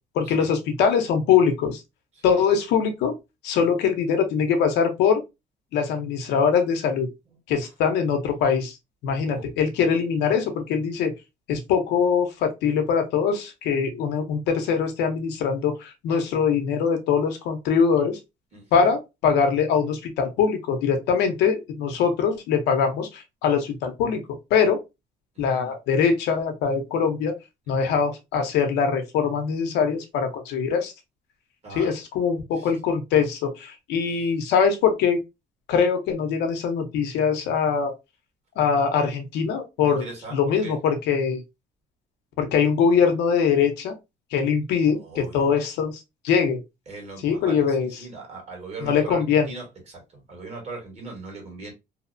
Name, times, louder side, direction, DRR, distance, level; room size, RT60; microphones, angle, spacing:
voice 1, 0.2-1.8 2.2-3.1 3.4-5.2 5.7-7.1 7.5-8.8 9.0-11.1 11.5-18.2 18.7-24.2 24.5-24.8 25.4-27.3 27.7-30.9 31.7-35.2 35.7-37.9 38.6-41.4 42.4-43.9 44.3-45.9 46.2-46.6 47.2-47.9 48.8-49.5, left 6 dB, 80° left, 0.6 m, -22 dB
voice 2, 18.5-18.9 25.6-25.7 27.7-28.0 31.6-31.9 32.5-32.7 34.0-34.3 39.8-40.8 44.9-45.5 46.9-51.7, right 3 dB, 40° right, 1.4 m, -40 dB
2.7 x 2.0 x 2.5 m
cardioid pair, 110°, 17 cm